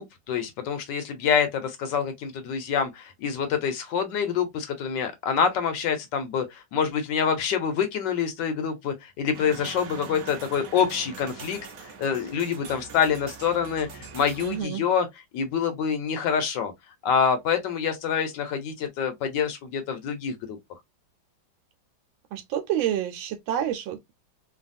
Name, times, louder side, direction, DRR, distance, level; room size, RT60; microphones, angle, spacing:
voice 1, 0.0-11.6 12.0-15.1 15.3-16.7 17.0-20.6, left 7 dB, 75° left, 1.2 m, -26 dB
sound 1, 9.3-14.6, right 5 dB, 65° right, 0.9 m, -42 dB
voice 2, 14.4-14.8 22.3-24.1, right 10 dB, 85° right, 1.4 m, -28 dB
3.2 x 2.3 x 2.5 m
omnidirectional pair, 2.2 m